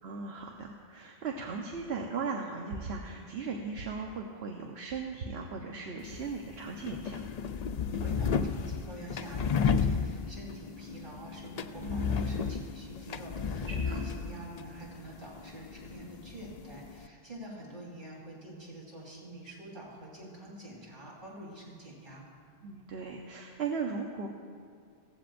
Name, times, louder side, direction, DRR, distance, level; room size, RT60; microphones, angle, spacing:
voice 1, 0.0-7.2 11.8-12.5 13.7-14.1 22.6-24.3, right 4 dB, 80° right, 1 dB, 1.1 m, -37 dB
sound 1, 6.0-17.1, left 6 dB, 55° left, 0.5 m, -33 dB
voice 2, 7.9-22.2, right 1 dB, 55° right, -6 dB, 4.3 m, -46 dB
18.0 x 15.5 x 2.6 m, 2.2 s
omnidirectional pair, 1.0 m